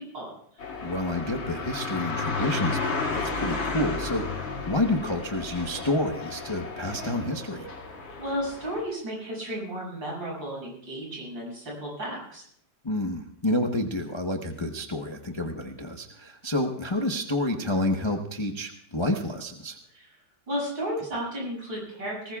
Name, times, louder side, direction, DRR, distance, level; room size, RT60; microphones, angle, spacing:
sound 1, 0.6-8.8, left 4 dB, 80° left, 3.4 m, -33 dB
voice 1, 0.8-7.7 12.8-19.8, left 1 dB, 25° left, 3 dB, 0.7 m, -29 dB
voice 2, 8.2-12.4 19.9-20.1 20.5-22.4, equal, 70° right, -4 dB, 8.0 m, -33 dB
20.0 x 19.5 x 2.4 m, 0.62 s
omnidirectional pair, 2.1 m